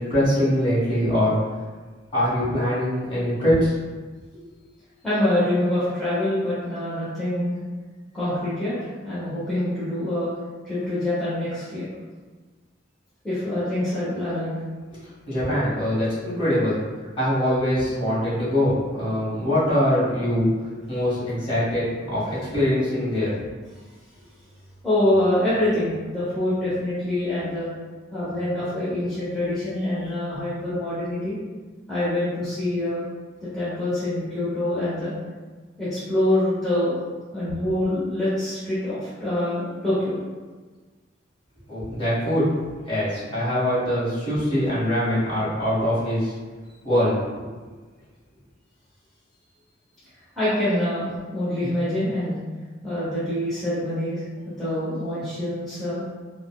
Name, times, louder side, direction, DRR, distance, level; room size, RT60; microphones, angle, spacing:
voice 1, 0.0-1.4 2.1-3.7 15.2-16.8 17.2-20.5 20.9-23.3 41.7-42.5 42.9-46.3 46.8-47.2, equal, 30° left, -11 dB, 1.5 m, -23 dB
voice 2, 5.0-7.6 8.1-10.3 10.6-11.8 13.2-14.6 24.8-27.7 28.1-31.4 31.9-33.0 33.4-35.1 35.8-37.0 37.3-40.2 50.4-52.4 52.8-56.0, left 1 dB, ahead, -13 dB, 0.8 m, -25 dB
4.0 x 2.0 x 2.3 m, 1.4 s
head